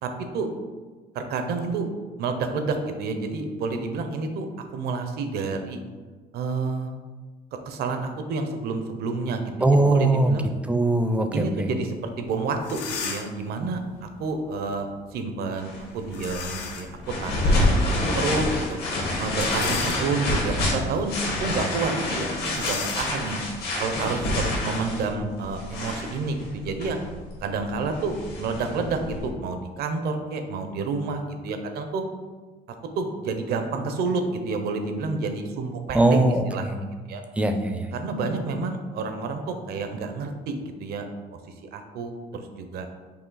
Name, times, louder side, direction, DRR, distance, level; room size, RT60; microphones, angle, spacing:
voice 1, 0.0-0.5 1.1-1.9 2.2-4.5 4.7-5.8 6.3-7.0 7.7-10.5 11.3-18.8 19.2-23.4 23.8-27.0 27.4-32.0 32.9-36.1 36.5-36.7 37.1-37.2 37.9-42.9, right 4 dB, 70° right, 6 dB, 0.6 m, -29 dB
voice 2, 9.6-10.4 10.7-11.7 35.9-36.8 37.4-37.9, right 2 dB, 5° right, 6 dB, 0.4 m, -21 dB
sound 1, 12.2-12.3 12.6-13.5 16.1-17.0 17.5-17.6 19.3-20.4 21.0-21.2 21.4-21.6 22.4-24.9, left 5 dB, 85° left, 0.7 m, -35 dB
sound 2, 15.6-29.3, left 1 dB, 70° left, 1.4 m, -28 dB
4.8 x 2.8 x 3.9 m, 1.4 s
cardioid pair, 110°, 17 cm